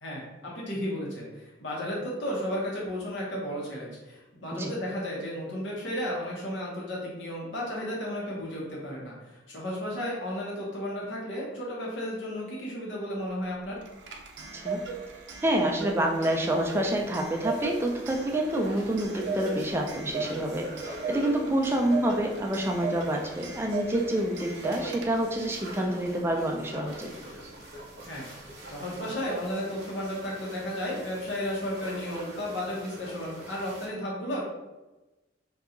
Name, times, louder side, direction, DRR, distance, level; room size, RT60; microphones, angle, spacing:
voice 1, 0.0-13.8 28.0-34.4, equal, 85° left, -4 dB, 0.8 m, -34 dB
Clock, 13.8-25.4, right 4 dB, 85° right, 0.5 m, -36 dB
voice 2, 15.4-27.1, right 1 dB, 15° right, 1 dB, 0.3 m, -28 dB
sound 1, 16.3-33.9, right 1 dB, 60° right, 0.8 m, -44 dB
2.8 x 2.3 x 3.7 m, 1.1 s
head